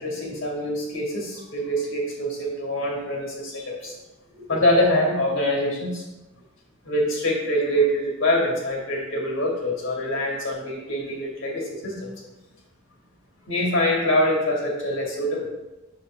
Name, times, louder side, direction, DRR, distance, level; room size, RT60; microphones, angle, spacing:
voice 1, 0.0-3.9 4.5-6.1 6.8-12.1 13.5-15.5, left 1 dB, 65° left, -1 dB, 2.5 m, -24 dB
10.5 x 7.1 x 2.5 m, 1.0 s
head